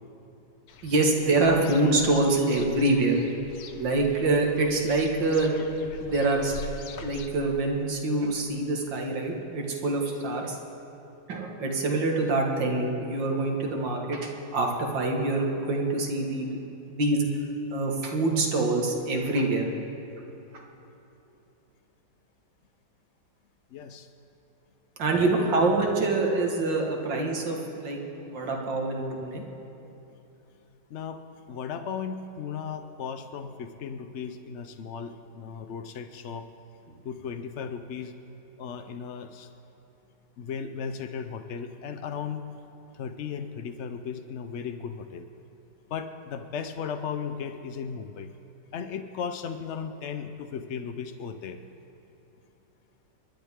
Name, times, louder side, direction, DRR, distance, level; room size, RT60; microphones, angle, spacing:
sound 1, 0.7-7.3, left 3 dB, 70° left, 1.4 m, -43 dB
voice 1, 0.8-3.2 3.8-5.6 6.0-6.6 7.0-10.6 11.3-16.5 16.9-17.3 17.7-19.7 25.0-29.4, right 2 dB, 75° right, 1 dB, 2.3 m, -25 dB
voice 2, 23.7-24.1 25.2-25.3 30.9-31.2 31.5-36.5 37.0-38.1 38.6-39.5 40.4-42.5 42.9-45.3 45.9-48.3 48.7-51.6, left 6 dB, 90° left, 8 dB, 0.6 m, -36 dB
29.0 x 11.5 x 3.6 m, 2.9 s
omnidirectional pair, 2.0 m